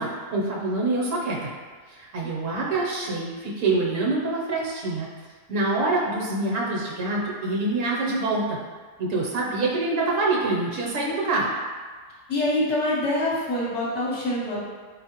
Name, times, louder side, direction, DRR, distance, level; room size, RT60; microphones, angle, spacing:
voice 1, 0.0-1.5 1.9-5.1 5.5-8.6 9.0-11.5, right 2 dB, 65° right, -3 dB, 1.0 m, -25 dB
voice 2, 12.3-14.6, left 1 dB, 60° left, -6 dB, 1.0 m, -25 dB
4.2 x 2.6 x 2.8 m, 1.5 s
omnidirectional pair, 1.5 m